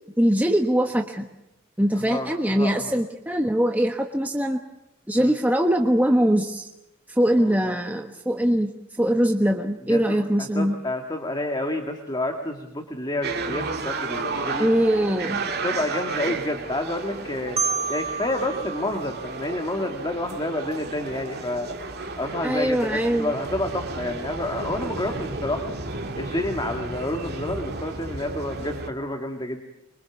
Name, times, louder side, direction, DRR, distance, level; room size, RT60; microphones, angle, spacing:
voice 1, 0.2-1.3 1.8-4.6 5.1-6.7 7.1-10.7 14.6-15.4 22.4-23.3, equal, 10° right, 3 dB, 1.2 m, -22 dB
voice 2, 1.9-3.0 5.1-5.3 7.5-7.8 9.9-14.7 15.6-17.6 17.9-21.8 22.2-25.7 26.2-29.6, left 1 dB, 20° left, 4 dB, 2.0 m, -29 dB
sound 1, 13.2-28.9, right 3 dB, 45° right, 2.4 m, -33 dB
Marimba xylophone, 17.6-20.4, right 5 dB, 30° right, 0.9 m, -31 dB
25.5 x 24.0 x 7.1 m, 0.88 s
head